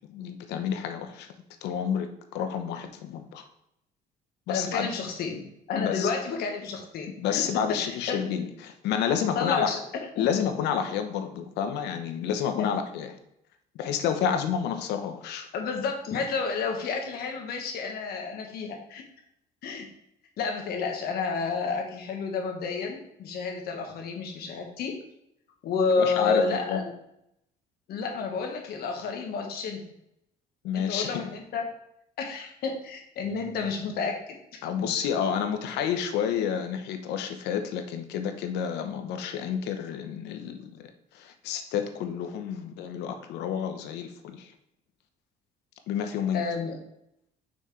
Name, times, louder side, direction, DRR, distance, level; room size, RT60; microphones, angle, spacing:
voice 1, 0.1-1.3 1.6-3.4 4.5-4.9 5.8-6.1 7.2-9.7 10.2-13.1 13.7-15.5 26.0-26.8 30.6-31.2 34.6-40.9 41.1-44.5 45.9-46.4, left 8 dB, 85° left, 7 dB, 0.9 m, -29 dB
voice 2, 4.5-8.2 9.3-10.3 12.5-12.7 15.5-19.0 19.6-19.9 20.4-25.0 25.6-26.9 27.9-29.8 30.7-31.7 32.2-34.4 46.3-46.8, left 5 dB, 65° left, 3 dB, 1.5 m, -30 dB
6.2 x 5.7 x 3.2 m, 0.78 s
cardioid pair, 110°, 17 cm